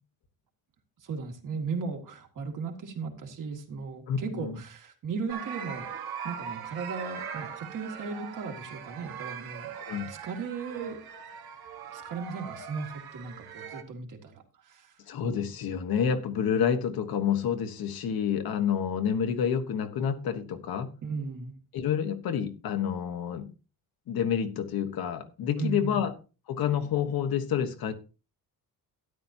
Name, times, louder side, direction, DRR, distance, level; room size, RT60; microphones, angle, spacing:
voice 1, 1.0-5.9 6.2-9.7 10.1-11.0 11.9-15.0 21.0-21.6 25.6-26.1, right 5 dB, 60° right, 2.2 m, -36 dB
voice 2, 4.1-4.6 9.7-10.1 15.1-20.9 21.7-23.5 24.1-26.1 26.5-27.9, left 8 dB, 75° left, 1.4 m, -28 dB
sound 1, 5.3-13.8, right 8 dB, 85° right, 1.7 m, -40 dB
13.0 x 10.5 x 2.8 m
cardioid pair, 140°, 36 cm